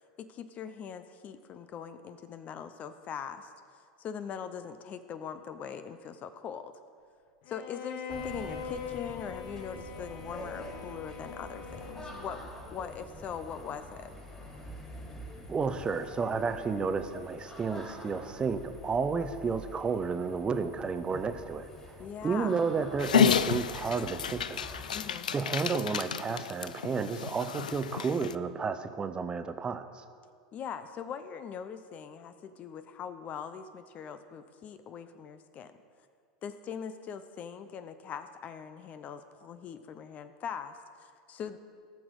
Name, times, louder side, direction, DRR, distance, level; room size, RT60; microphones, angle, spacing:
voice 1, 0.2-6.7 7.5-14.1 22.0-22.6 24.9-25.3 30.5-35.8 36.4-41.6, left 7 dB, 35° left, 10 dB, 0.7 m, -41 dB
Bowed string instrument, 7.5-12.6, left 6 dB, 55° left, 1.0 m, -43 dB
sound 1, 8.1-25.1, equal, 15° left, 2.6 m, -46 dB
voice 2, 15.5-24.6 25.3-30.0, right 5 dB, 20° right, 10 dB, 0.8 m, -32 dB
Dog, 23.0-28.3, left 8 dB, 85° left, 0.4 m, -30 dB
18.0 x 6.2 x 4.8 m, 2.1 s
hypercardioid pair, 95°, 4 cm